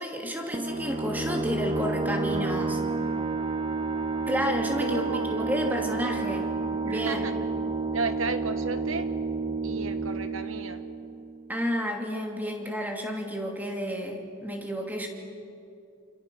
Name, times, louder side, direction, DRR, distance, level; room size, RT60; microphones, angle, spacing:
voice 1, 0.0-2.8 4.3-6.5 6.8-7.3 11.5-15.1, equal, 10° right, 2 dB, 2.7 m, -31 dB
sound 1, 0.5-11.8, right 3 dB, 25° right, 1.0 m, -30 dB
voice 2, 4.7-5.3 6.8-7.3 7.9-9.1 9.6-10.8, right 3 dB, 70° right, 9 dB, 1.6 m, -33 dB
28.0 x 27.5 x 6.2 m, 2.6 s
head